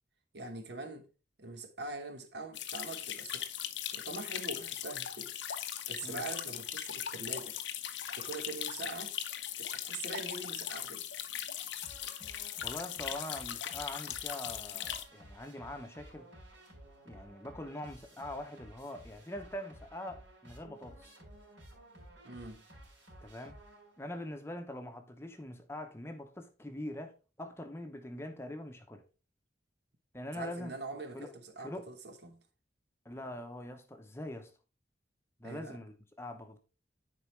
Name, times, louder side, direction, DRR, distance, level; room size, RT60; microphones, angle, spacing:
voice 1, 0.3-1.1 1.4-3.5 3.9-5.3 5.9-7.6 8.2-9.1 9.6-11.0 22.2-22.6 30.3-32.4 35.4-35.8, right 3 dB, 65° right, 1.1 m, -43 dB
sound 1, 2.5-15.0, left 10 dB, 80° left, 0.7 m, -39 dB
sound 2, 11.8-24.2, right 1 dB, 80° right, 3.8 m, -54 dB
voice 2, 12.4-16.3 17.0-21.2 23.2-23.6 24.0-29.0 30.1-30.8 31.1-31.3 31.6-31.9 33.0-34.5 35.4-36.6, left 1 dB, 15° left, 0.8 m, -43 dB
10.0 x 4.7 x 3.3 m
head